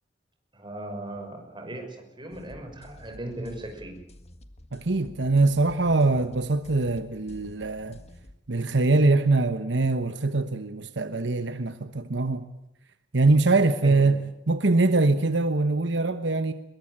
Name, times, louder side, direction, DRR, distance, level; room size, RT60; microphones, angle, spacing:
voice 1, 0.5-4.0 13.8-14.2, right 1 dB, 25° right, 5.9 m, -38 dB
sound 1, 2.3-8.3, left 1 dB, 35° left, 1.8 m, -49 dB
voice 2, 4.7-8.0 8.5-12.5 13.1-16.5, right 3 dB, 70° right, 1.1 m, -23 dB
23.0 x 22.0 x 8.8 m
head